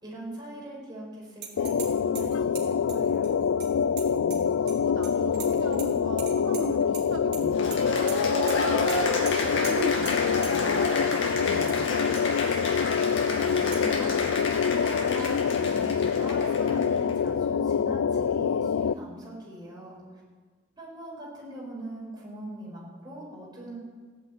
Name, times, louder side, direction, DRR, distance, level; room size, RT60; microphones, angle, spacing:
voice 1, 0.0-3.3 13.2-20.0 20.8-23.8, right 1 dB, 20° right, -4 dB, 5.4 m, -41 dB
sound 1, 1.4-1.9 2.2-4.8 5.0-5.9 6.2-7.0 7.3-7.8 8.1-8.2 8.5-8.6 8.9-9.0 9.3-9.4 9.6-9.7 10.1-10.2 10.4-10.5 11.4-11.8 12.2-12.3 12.8-12.9 13.7-13.8 15.2-15.3, right 7 dB, 50° right, 2.6 m, -40 dB
sound 2, 1.6-18.9, left 7 dB, 90° left, 0.4 m, -26 dB
voice 2, 4.1-4.5 4.8-8.1 8.6-12.6, right 1 dB, 75° right, 3 dB, 1.3 m, -38 dB
Cheering / Applause, 7.5-17.1, left 2 dB, 65° left, 2.4 m, -31 dB
15.5 x 10.5 x 8.6 m, 1.5 s
head